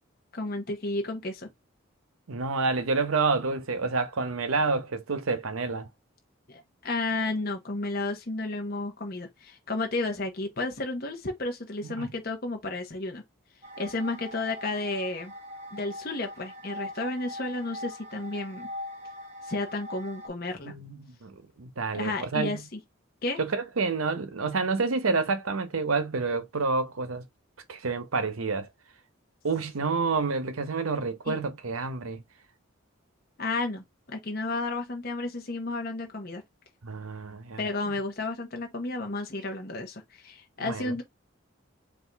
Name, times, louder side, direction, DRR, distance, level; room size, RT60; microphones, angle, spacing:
voice 1, 0.3-1.5 6.5-13.2 13.8-15.3 15.7-18.7 19.4-20.7 21.9-22.8 23.2-23.4 31.2-31.4 33.4-36.4 37.6-41.0, left 2 dB, 45° left, 0.9 m, -32 dB
voice 2, 2.3-5.9 11.9-12.1 20.6-22.6 23.4-27.2 27.7-28.7 29.4-32.2 36.8-37.6 40.6-41.0, right 4 dB, 85° right, 0.8 m, -29 dB
sound 1, 13.6-20.3, left 1 dB, 30° right, 0.8 m, -41 dB
4.5 x 2.6 x 3.3 m
head